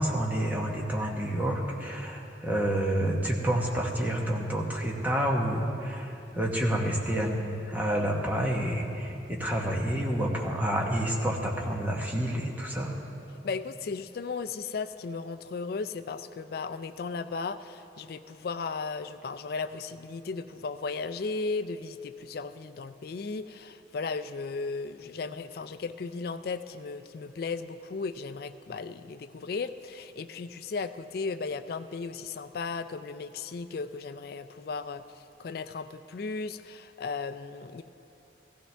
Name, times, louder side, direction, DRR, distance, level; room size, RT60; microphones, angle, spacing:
voice 1, 0.0-13.0, right 1 dB, 10° right, -1 dB, 1.1 m, -29 dB
voice 2, 13.4-37.8, left 4 dB, 50° left, 11 dB, 0.3 m, -36 dB
15.5 x 15.0 x 3.4 m, 2.8 s
head